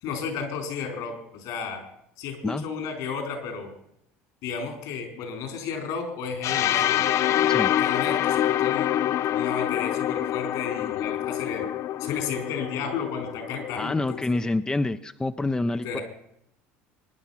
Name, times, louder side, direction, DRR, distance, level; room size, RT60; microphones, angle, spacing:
voice 1, 0.0-1.8 2.2-3.7 4.4-7.1 7.6-8.9 9.3-11.7 12.0-14.5 15.7-16.0, left 6 dB, 70° left, 5 dB, 4.6 m, -33 dB
sound 1, 6.4-14.3, left 11 dB, 55° left, 0.5 m, -26 dB
voice 2, 13.8-16.0, left 2 dB, 10° left, 10 dB, 0.6 m, -27 dB
24.5 x 10.5 x 5.8 m, 0.76 s
hypercardioid pair, 80°, 6 cm